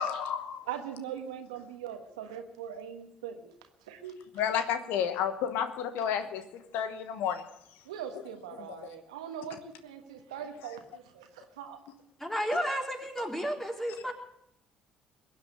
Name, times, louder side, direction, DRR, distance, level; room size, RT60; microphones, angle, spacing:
voice 1, 0.0-0.6 4.4-7.4 8.8-8.9, left 8 dB, 70° left, 10 dB, 1.1 m, -31 dB
voice 2, 0.7-3.5 3.9-4.2 7.8-11.8, right 8 dB, 80° right, 6 dB, 1.3 m, -41 dB
voice 3, 12.2-14.1, equal, 10° left, 1 dB, 3.8 m, -32 dB
21.5 x 8.8 x 6.7 m, 0.76 s
hypercardioid pair, 50°, 3 cm